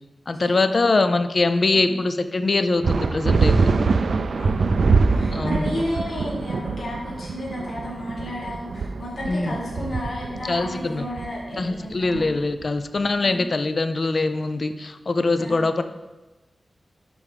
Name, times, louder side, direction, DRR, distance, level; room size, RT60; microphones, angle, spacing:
voice 1, 0.3-3.7 5.3-5.7 9.3-9.6 10.5-11.1 11.6-15.8, left 3 dB, 45° left, 10 dB, 0.4 m, -23 dB
sound 1, 2.8-12.8, right 4 dB, 70° right, 0.4 m, -23 dB
voice 2, 4.4-12.3 13.2-13.4 15.4-15.7, left 1 dB, 65° left, -5 dB, 1.8 m, -33 dB
11.0 x 4.8 x 3.5 m, 1.1 s
wide cardioid pair, 140°, 0 cm